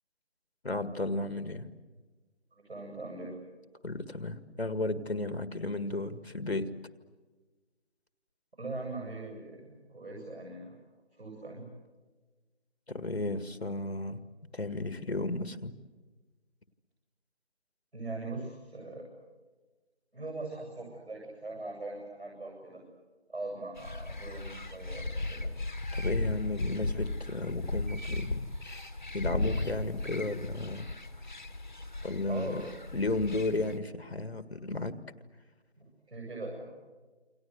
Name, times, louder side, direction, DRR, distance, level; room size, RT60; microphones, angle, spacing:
voice 1, 0.6-1.7 3.8-6.7 12.9-14.2 14.5-15.7 25.9-28.8 29.1-30.9 32.0-32.7 32.9-35.0, left 2 dB, 65° left, 12 dB, 1.9 m, -34 dB
voice 2, 2.5-3.3 8.6-10.8 11.2-11.7 17.9-19.1 20.1-22.8 23.3-25.5 32.2-32.6 35.8-36.7, right 2 dB, 70° right, 1 dB, 8.0 m, -41 dB
sound 1, 23.8-33.8, left 2 dB, 45° left, 1.4 m, -36 dB
28.5 x 25.0 x 8.1 m, 1.3 s
figure-of-eight pair, 175°, 34 cm